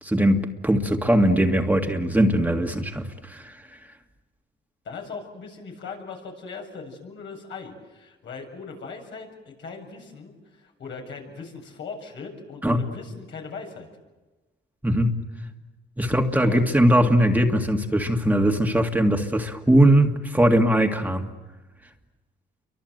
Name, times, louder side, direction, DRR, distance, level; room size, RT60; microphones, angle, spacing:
voice 1, 0.0-3.6 12.6-12.8 14.8-15.2 16.0-21.3, right 1 dB, 10° right, 3 dB, 2.1 m, -20 dB
voice 2, 4.8-13.9 16.3-16.9, left 4 dB, 70° left, 1 dB, 7.5 m, -39 dB
29.5 x 24.5 x 8.0 m, 1.2 s
cardioid pair, 90°, 20 cm